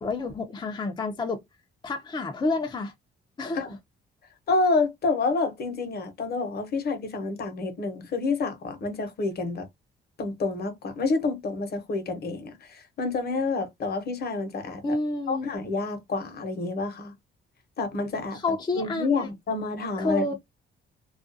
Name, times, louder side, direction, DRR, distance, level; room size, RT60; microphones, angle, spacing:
voice 1, 0.0-1.4 1.8-2.9 3.4-3.6 14.8-15.5 18.4-19.3 20.0-20.3, left 3 dB, 20° left, 0.5 m, -29 dB
voice 2, 4.5-9.7 10.2-14.8 15.3-17.1 17.8-18.4 18.7-20.3, left 3 dB, 55° left, 0.9 m, -28 dB
2.4 x 2.2 x 2.6 m
cardioid pair, 90°, 20 cm